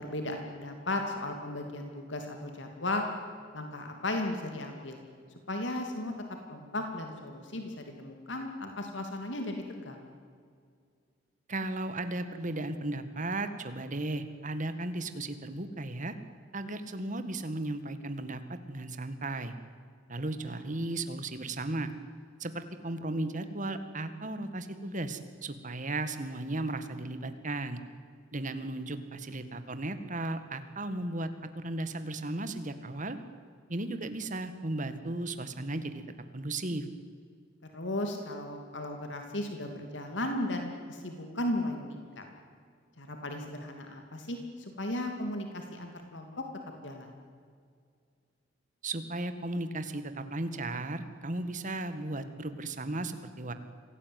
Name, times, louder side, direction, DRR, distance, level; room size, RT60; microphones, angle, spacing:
voice 1, 0.0-3.1 3.5-5.0 5.5-6.1 6.5-10.0 20.5-20.6 37.7-42.2 43.0-46.4 46.8-47.1, left 1 dB, 70° left, 4 dB, 2.8 m, -35 dB
voice 2, 11.5-16.2 16.5-19.5 20.1-21.9 22.4-27.8 28.3-31.3 31.5-33.2 33.7-36.0 36.3-36.9 48.8-53.5, right 2 dB, 45° right, 10 dB, 1.9 m, -35 dB
26.0 x 17.5 x 9.6 m, 2.1 s
head